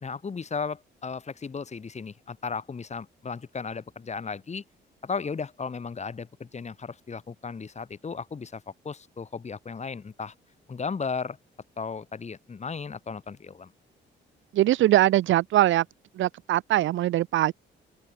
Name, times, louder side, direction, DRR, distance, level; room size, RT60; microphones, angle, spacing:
voice 1, 0.0-4.6 5.0-10.3 10.7-11.4 11.8-13.7, left 5 dB, 35° left, 3.3 m, -35 dB
voice 2, 14.5-15.8 16.2-17.5, right 14 dB, 75° right, 0.8 m, -22 dB
open air
cardioid pair, 90°, 20 cm